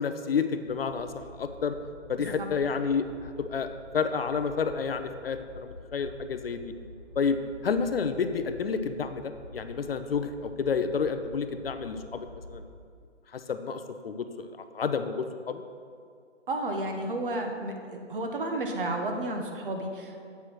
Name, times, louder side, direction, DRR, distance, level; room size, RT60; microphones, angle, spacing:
voice 1, 0.0-1.7 2.1-6.7 7.2-12.6 13.3-15.6, left 5 dB, 55° left, 9 dB, 0.5 m, -30 dB
sound 1, 0.6-12.7, left 1 dB, 25° right, 0.4 m, -48 dB
voice 2, 2.2-2.5 16.5-20.2, right 1 dB, 45° right, 4 dB, 1.0 m, -32 dB
8.2 x 6.2 x 4.3 m, 2.3 s
hypercardioid pair, 165°, 36 cm